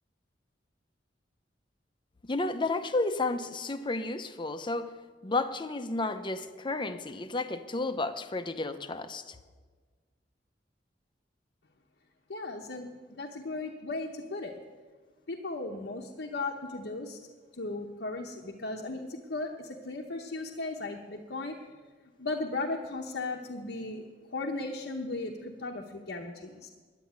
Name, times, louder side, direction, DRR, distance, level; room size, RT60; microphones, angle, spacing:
voice 1, 2.2-4.9 5.2-9.4, left 2 dB, 25° left, 10 dB, 0.7 m, -32 dB
voice 2, 12.3-14.6 15.3-17.2 17.5-21.6 22.0-26.7, left 2 dB, 70° left, 1 dB, 1.0 m, -36 dB
10.5 x 9.8 x 9.3 m, 1.4 s
head